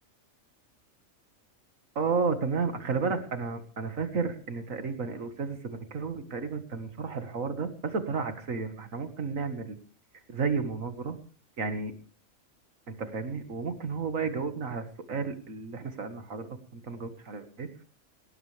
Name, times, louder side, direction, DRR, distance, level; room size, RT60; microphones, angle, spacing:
voice 1, 2.0-9.7 10.3-11.2 11.6-11.9 12.9-17.7, right 5 dB, 75° right, 8 dB, 2.1 m, -32 dB
18.5 x 18.0 x 3.4 m, 0.42 s
omnidirectional pair, 1.4 m